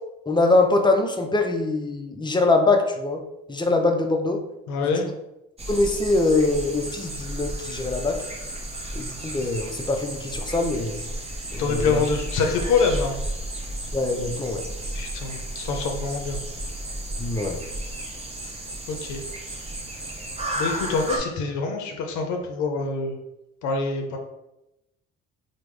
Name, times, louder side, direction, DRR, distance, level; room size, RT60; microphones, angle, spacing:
voice 1, 0.3-3.2 3.5-4.4 5.7-8.2 9.0-11.0 11.5-12.0 13.9-14.7 17.2-17.6, left 2 dB, 15° left, 4 dB, 0.4 m, -23 dB
voice 2, 4.7-5.1 11.6-13.2 14.9-16.4 18.9-19.2 20.6-23.2 23.6-24.2, left 4 dB, 80° left, 3 dB, 0.5 m, -25 dB
sound 1, 5.6-21.2, right 1 dB, 20° right, 0.6 m, -33 dB
3.4 x 2.1 x 3.2 m, 0.90 s
supercardioid pair, 70°, 29 cm